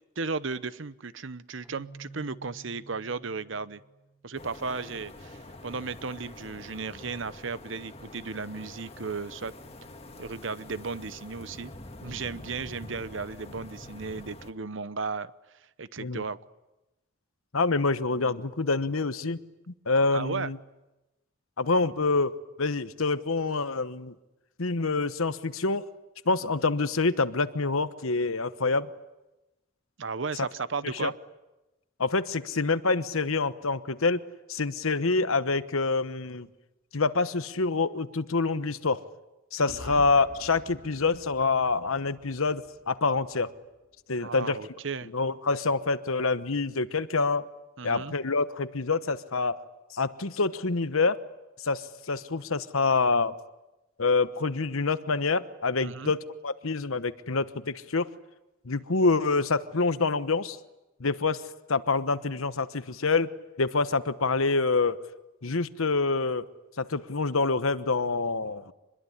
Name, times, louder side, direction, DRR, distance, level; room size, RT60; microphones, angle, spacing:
voice 1, 0.2-3.8 4.2-9.5 10.1-11.7 12.0-15.3 15.8-16.4 20.1-20.5 30.0-31.1 39.6-40.0 44.2-45.1 47.8-48.1 55.8-56.1, right 4 dB, 65° right, 16 dB, 0.9 m, -35 dB
Keyboard (musical), 1.6-4.5, right 3 dB, 10° right, 4.1 m, -50 dB
sound 1, 4.4-14.5, left 1 dB, 30° left, 1.8 m, -46 dB
voice 2, 17.5-19.4 19.7-20.6 21.6-24.1 24.6-25.9 26.2-28.9 30.8-31.1 32.0-34.2 34.5-36.5 36.9-39.0 39.5-43.5 44.1-44.6 45.1-47.5 47.8-49.6 49.9-51.2 51.6-53.4 54.0-58.1 58.6-60.6 61.0-61.4 61.7-63.3 63.6-65.0 65.4-66.4 66.8-68.7, left 3 dB, 80° left, 13 dB, 1.1 m, -26 dB
sound 2, 39.7-43.6, equal, 50° left, 1.9 m, -48 dB
26.0 x 21.5 x 10.0 m, 1.0 s
head